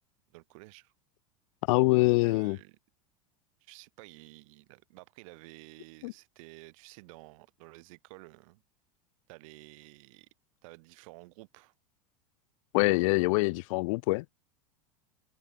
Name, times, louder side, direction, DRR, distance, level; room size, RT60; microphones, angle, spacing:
voice 1, 0.3-0.9 2.2-2.8 3.6-8.6 9.3-10.3 10.6-11.7, right 25 dB, 65° right, 2.4 m, -52 dB
voice 2, 1.7-2.6 6.0-6.1 12.7-14.2, left 24 dB, 65° left, 0.5 m, -24 dB
hypercardioid pair, 90°, 18 cm